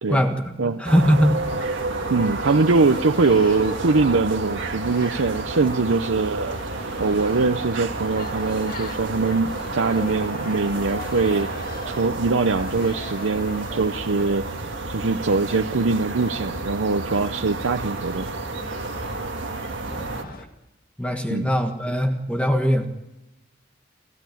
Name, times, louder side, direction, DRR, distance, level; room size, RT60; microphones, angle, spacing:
voice 1, 0.1-1.4 19.9-20.3 21.0-22.9, equal, 5° left, 5 dB, 1.5 m, -21 dB
sound 1, 0.9-20.2, right 3 dB, 70° right, 1.8 m, -31 dB
sound 2, 1.4-20.4, left 2 dB, 45° left, 1.9 m, -40 dB
voice 2, 2.1-6.6 7.0-14.5 14.9-18.3 21.3-21.5, right 3 dB, 90° right, 6 dB, 0.7 m, -22 dB
29.5 x 12.5 x 9.3 m, 0.98 s
head